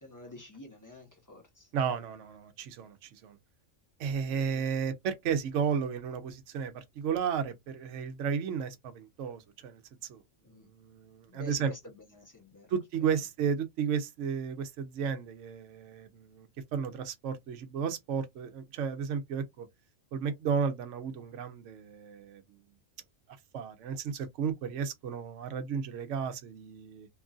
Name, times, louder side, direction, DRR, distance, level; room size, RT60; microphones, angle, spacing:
voice 1, 0.0-1.7 10.4-10.7 11.3-12.7 13.0-13.1, left 2 dB, 15° left, 0.9 m, -49 dB
voice 2, 1.7-3.4 4.0-9.8 10.1-10.2 10.7-11.7 12.7-19.7 20.1-22.4 23.5-27.1, right 7 dB, 75° right, 0.9 m, -33 dB
2.9 x 2.4 x 2.4 m
omnidirectional pair, 1.3 m